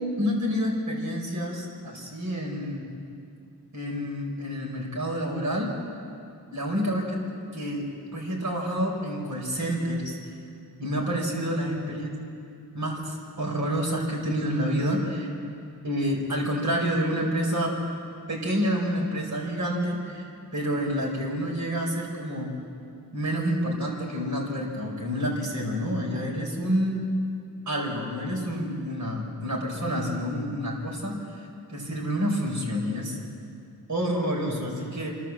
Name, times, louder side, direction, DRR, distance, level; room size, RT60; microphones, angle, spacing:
voice 1, 0.2-2.9 3.7-5.7 6.5-7.2 7.5-7.9 8.1-10.2 10.8-12.1 12.7-15.3 15.8-17.7 18.3-20.2 20.5-22.5 23.1-27.0 27.7-33.2 33.9-35.2, equal, 50° right, -2 dB, 5.4 m, -28 dB
27.5 x 12.5 x 7.6 m, 2.4 s
wide cardioid pair, 125°, 37 cm